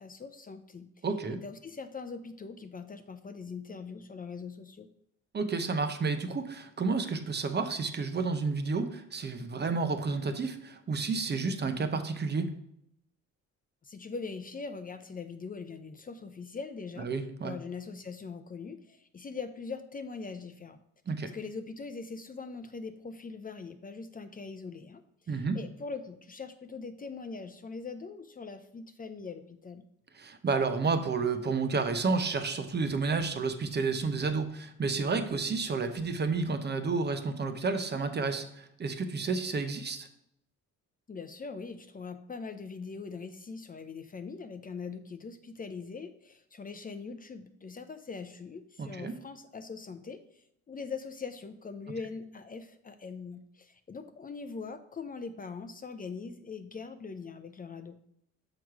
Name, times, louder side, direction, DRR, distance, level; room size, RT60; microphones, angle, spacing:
voice 1, 0.0-4.9 13.8-17.1 17.4-20.8 21.2-29.9 41.1-58.0, left 4 dB, 30° left, 9 dB, 0.6 m, -42 dB
voice 2, 1.0-1.4 5.3-12.5 17.0-17.5 21.1-21.3 25.3-25.6 30.2-40.1 48.8-49.1, right 4 dB, 35° right, 8 dB, 0.8 m, -31 dB
6.2 x 4.8 x 4.8 m, 0.75 s
cardioid pair, 90°, 30 cm